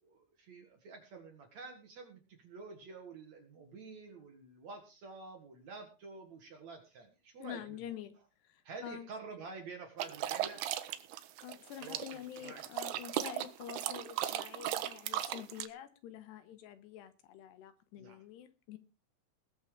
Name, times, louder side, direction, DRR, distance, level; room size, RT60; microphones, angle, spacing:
voice 1, 0.0-7.9 8.6-10.6 11.8-12.6 18.0-18.2, right 4 dB, 50° right, 4 dB, 2.4 m, -49 dB
voice 2, 7.4-8.1 8.4-9.1 11.4-18.8, left 10 dB, 75° left, 12 dB, 3.1 m, -47 dB
sound 1, 10.0-15.7, right 12 dB, 75° right, 2.7 m, -37 dB
20.0 x 7.1 x 4.9 m, 0.31 s
omnidirectional pair, 5.1 m